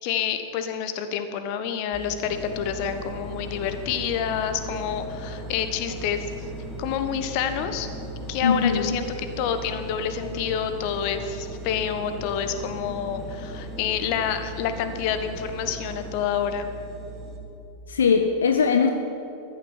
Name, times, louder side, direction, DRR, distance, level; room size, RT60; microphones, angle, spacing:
voice 1, 0.0-6.5 6.8-7.9 8.3-16.7, left 8 dB, 45° left, 9 dB, 1.2 m, -28 dB
sound 1, 1.9-17.4, right 1 dB, 25° right, 2.7 m, -39 dB
sound 2, 2.2-16.1, left 2 dB, 15° left, 2.3 m, -41 dB
voice 2, 8.4-9.0 17.9-18.9, left 6 dB, 70° left, 6 dB, 0.8 m, -20 dB
14.0 x 11.0 x 7.3 m, 2.8 s
figure-of-eight pair, 90°, 0 cm